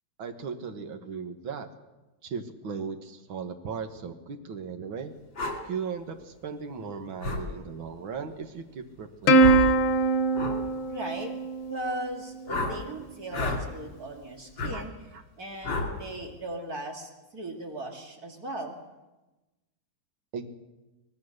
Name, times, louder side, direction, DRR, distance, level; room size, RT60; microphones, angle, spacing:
voice 1, 0.2-1.7 2.2-5.1 5.7-9.7 12.5-12.6 14.7-14.9 15.1-15.2 20.3-20.5, right 6 dB, 85° right, 6 dB, 2.3 m, -37 dB
sound 1, 5.3-5.6 7.2-7.4 9.4-9.7 10.3-10.6 12.5-12.7 13.3-13.6 14.6-14.7 15.6-15.9, left 3 dB, 70° left, 4.0 m, -29 dB
Plucked string instrument, 9.3-12.0, right 2 dB, 90° left, 1.9 m, -22 dB
voice 2, 10.9-11.4 11.7-14.9 15.4-18.8, right 1 dB, 50° right, 2 dB, 2.9 m, -37 dB
25.0 x 19.0 x 6.6 m, 1.1 s
omnidirectional pair, 2.1 m